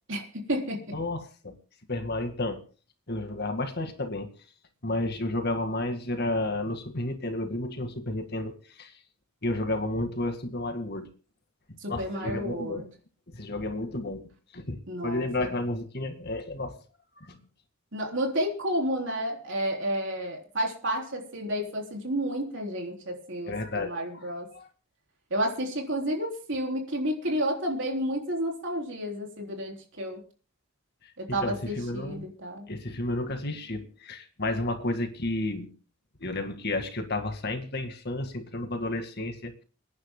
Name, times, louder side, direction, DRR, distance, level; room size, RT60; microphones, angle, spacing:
voice 1, 0.1-0.8 11.8-12.9 14.9-15.5 17.9-24.5 25.3-30.2 31.2-32.7, equal, 60° right, 3.7 m, -31 dB
voice 2, 0.9-1.6 1.9-2.6 3.1-4.3 4.8-8.9 9.4-11.1 11.9-12.9 13.3-14.2 14.5-16.8 17.2-17.4 23.5-24.7 31.3-32.3 32.7-35.7 36.2-39.6, left 2 dB, 50° left, 1.9 m, -32 dB
29.5 x 10.5 x 2.2 m
head